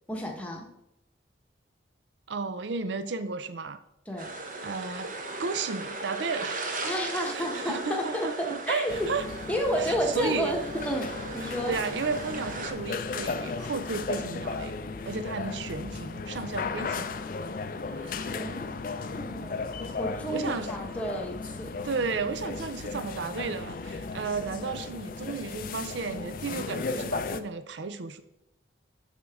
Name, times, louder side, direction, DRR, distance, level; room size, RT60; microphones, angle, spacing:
voice 1, 0.1-0.7 4.1-4.3 6.8-9.1 9.5-11.7 18.3-18.7 19.1-19.7 20.0-21.9, equal, 5° left, 0 dB, 1.0 m, -31 dB
voice 2, 2.3-3.8 4.6-5.1 5.4-6.7 7.1-9.2 9.8-10.6 11.7-14.8 15.1-17.2 17.9-18.4 20.3-20.7 21.8-28.2, right 4 dB, 70° right, 12 dB, 0.5 m, -33 dB
sound 1, 4.2-12.7, right 2 dB, 45° right, 0.9 m, -38 dB
sound 2, 8.9-27.4, left 4 dB, 45° left, 0.4 m, -36 dB
7.1 x 6.5 x 3.5 m, 0.84 s
head